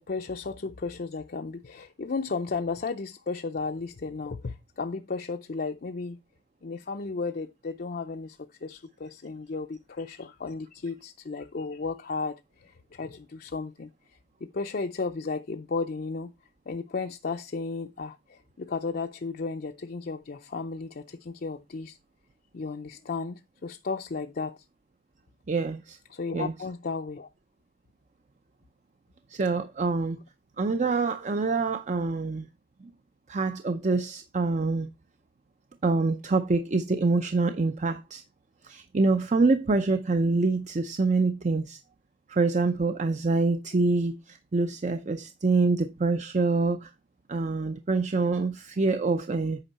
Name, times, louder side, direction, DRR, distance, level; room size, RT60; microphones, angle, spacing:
voice 1, 0.0-6.2 6.6-16.3 16.7-22.0 22.5-24.6 26.1-27.3, left 4 dB, 55° left, 0.5 m, -34 dB
voice 2, 25.5-26.0 26.3-26.5 29.3-30.2 30.6-32.5 33.3-34.9 35.8-38.2 38.6-41.8 42.3-46.9 47.3-49.6, right 3 dB, 40° right, 0.5 m, -26 dB
8.9 x 5.4 x 4.1 m
head